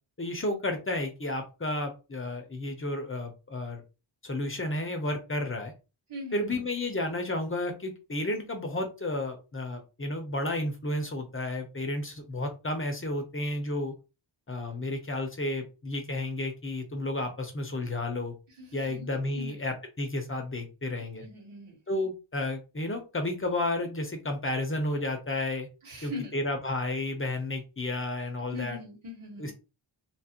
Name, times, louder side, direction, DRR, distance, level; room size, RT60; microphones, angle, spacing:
voice 1, 0.2-3.8 4.2-5.7 6.3-13.9 14.5-18.3 18.7-21.3 21.9-25.7 26.0-28.8 29.4-29.5, left 1 dB, 25° left, 4 dB, 0.7 m, -32 dB
voice 2, 6.1-6.6 18.6-19.6 21.2-21.7 25.8-26.3 28.5-29.5, left 2 dB, 85° right, -1 dB, 1.7 m, -41 dB
2.9 x 2.5 x 2.8 m, 0.30 s
wide cardioid pair, 80°, 49 cm